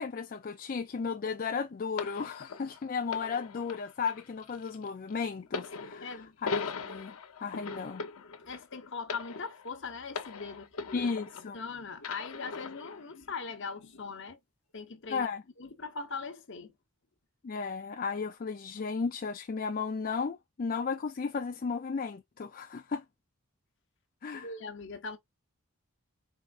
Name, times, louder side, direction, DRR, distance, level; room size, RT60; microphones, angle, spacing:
voice 1, 0.0-7.1 7.4-8.0 10.9-11.6 15.1-15.4 17.4-23.0 24.2-24.5, left 5 dB, 40° left, 0.4 m, -34 dB
sound 1, 2.0-11.6 12.0-13.0 13.8-14.0, left 4 dB, 85° left, 0.8 m, -40 dB
voice 2, 6.0-6.4 8.4-11.1 11.5-14.4 14.7-15.3 15.6-16.7 24.3-25.2, left 4 dB, 55° left, 1.0 m, -40 dB
4.7 x 3.7 x 2.5 m
head